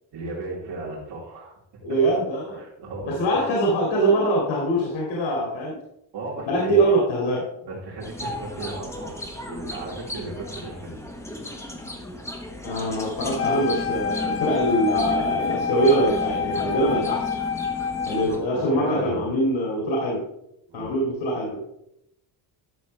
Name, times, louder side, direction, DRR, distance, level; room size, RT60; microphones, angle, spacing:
voice 1, 0.1-1.6 2.6-3.4 6.1-6.9 7.6-11.1 18.1-19.3 20.7-20.9, right 3 dB, 60° right, -5 dB, 3.6 m, -35 dB
voice 2, 1.8-2.6 3.0-5.8 6.5-7.4 12.6-17.3 18.1-20.2 20.7-21.6, right 1 dB, 85° left, -3 dB, 2.7 m, -23 dB
sound 1, 8.0-18.4, left 1 dB, 5° left, 1.1 m, -35 dB
Wind instrument woodwind instrument, 13.4-18.4, left 6 dB, 30° left, 0.7 m, -28 dB
12.5 x 6.5 x 3.4 m, 0.81 s
cardioid pair, 160°, 44 cm